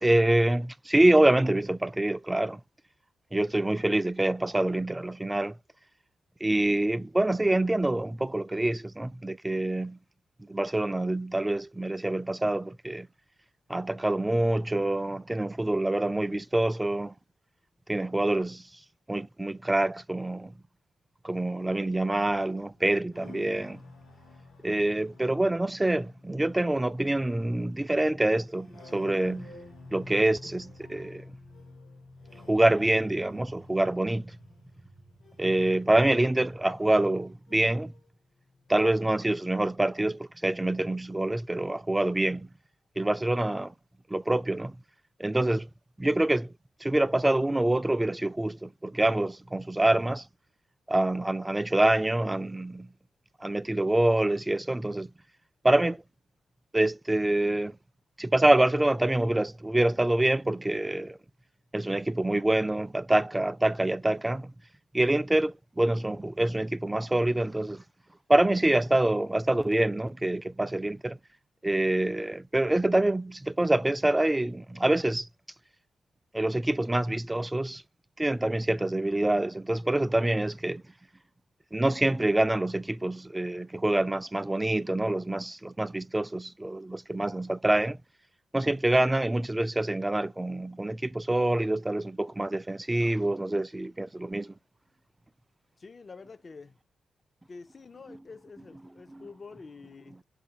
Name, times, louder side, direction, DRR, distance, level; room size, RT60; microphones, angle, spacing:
voice 1, 0.0-2.6 3.3-5.6 6.4-10.0 10.5-13.1 13.7-17.1 17.9-18.6 19.1-20.5 21.2-23.8 24.6-29.5 29.9-31.2 32.5-34.3 35.4-37.9 38.7-42.5 43.0-43.7 44.1-44.8 45.2-45.7 46.0-46.5 46.8-50.2 50.9-52.9 53.4-55.1 55.6-56.0 56.7-57.8 58.2-61.2 61.7-64.5 64.9-67.8 68.3-71.2 71.6-75.3 76.3-77.8 78.2-80.8 81.7-88.0 88.5-94.5 98.1-98.2 99.1-99.3, right 1 dB, 15° right, 0.3 m, -26 dB
sound 1, 22.2-38.0 38.3-39.1, left 2 dB, 75° left, 2.2 m, -51 dB
voice 2, 95.8-96.7 97.5-100.2, left 4 dB, 45° left, 0.4 m, -47 dB
4.0 x 3.4 x 2.8 m
hypercardioid pair, 40°, 0 cm